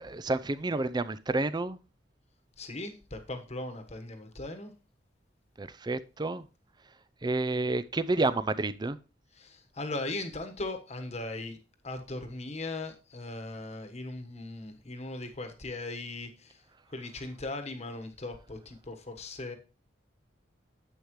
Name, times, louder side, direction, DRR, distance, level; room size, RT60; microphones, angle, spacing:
voice 1, 0.1-1.8 5.6-6.5 7.2-9.0, right 2 dB, 25° right, 0.5 m, -29 dB
voice 2, 2.6-4.7 9.4-11.6 11.8-16.6 16.9-19.6, left 2 dB, 35° left, 1.3 m, -38 dB
10.0 x 8.1 x 3.1 m
head